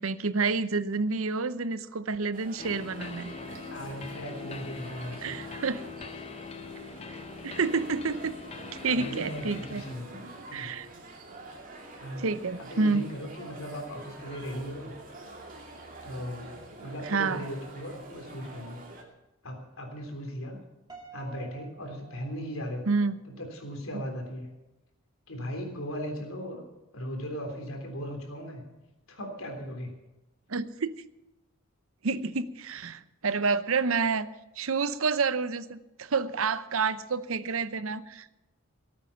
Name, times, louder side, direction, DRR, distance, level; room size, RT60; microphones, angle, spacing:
voice 1, 0.0-3.3 5.2-5.8 7.1-7.2 7.4-8.3 8.8-9.8 10.5-10.9 12.2-13.0 17.1-17.5 22.9-23.2 30.5-30.9 32.0-34.3 34.6-38.3, right 4 dB, 75° right, 14 dB, 0.7 m, -29 dB
sound 1, 2.3-19.0, right 2 dB, 40° right, 2.5 m, -47 dB
sound 2, 2.6-9.9, left 4 dB, 30° left, 0.9 m, -42 dB
voice 2, 3.7-5.4 8.9-10.7 12.0-14.9 16.0-18.8 19.4-20.6 21.1-22.8 23.2-24.5 25.3-26.6 26.9-28.6 29.1-29.9, equal, 75° left, 3 dB, 3.5 m, -38 dB
Piano, 20.9-23.1, right 5 dB, 20° right, 2.1 m, -50 dB
18.0 x 8.9 x 7.0 m, 1.0 s
head